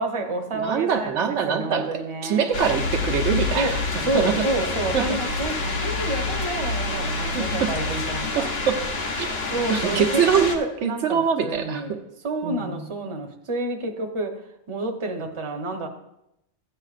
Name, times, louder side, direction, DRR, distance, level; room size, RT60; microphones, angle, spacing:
voice 1, 0.0-2.5 3.5-3.8 4.0-8.6 9.5-12.0 12.2-14.4 14.7-15.9, right 2 dB, 30° right, 2 dB, 0.8 m, -29 dB
voice 2, 0.5-1.9 2.2-4.5 4.9-5.2 7.3-7.7 8.3-8.8 9.2-9.3 9.7-10.5 10.8-12.0 12.4-12.8, right 7 dB, 85° right, 4 dB, 1.1 m, -24 dB
sound 1, 2.5-10.6, left 3 dB, 60° left, 1.2 m, -27 dB
13.0 x 9.0 x 2.5 m, 0.82 s
omnidirectional pair, 1.2 m